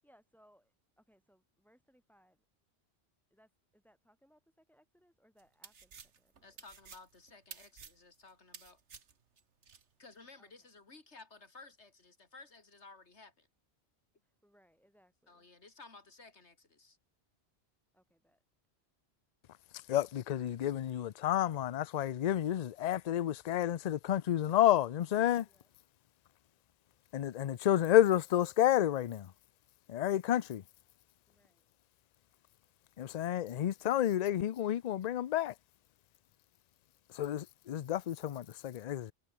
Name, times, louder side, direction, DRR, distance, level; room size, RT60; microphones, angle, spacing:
voice 1, 0.0-2.4 3.3-6.6 10.4-10.5 14.2-15.5 17.9-18.4 25.4-25.7 31.3-31.7, equal, ahead, 7.7 m, -69 dB
sound 1, 5.4-9.8, right 6 dB, 90° right, 1.8 m, -53 dB
voice 2, 6.4-8.8 10.0-13.5 15.3-17.0, left 3 dB, 80° left, 3.2 m, -56 dB
voice 3, 19.9-25.5 27.1-29.3 29.9-30.6 33.0-35.5 37.1-39.1, left 12 dB, 55° left, 0.5 m, -30 dB
omnidirectional pair, 1.1 m